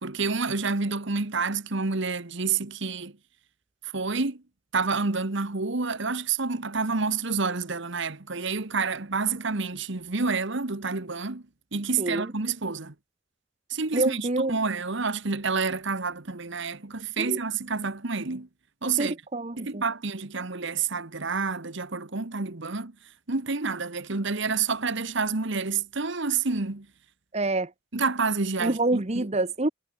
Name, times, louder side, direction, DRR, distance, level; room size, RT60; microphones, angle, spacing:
voice 1, 0.0-3.1 3.8-4.4 4.7-11.4 11.7-12.9 13.7-18.5 18.8-19.1 19.6-22.9 23.3-26.9 27.9-29.3, right 4 dB, 55° right, 1.3 m, -28 dB
voice 2, 12.0-12.3 13.9-14.6 17.2-17.4 19.0-19.8 27.3-27.7 28.6-29.7, right 2 dB, 30° right, 1.0 m, -27 dB
head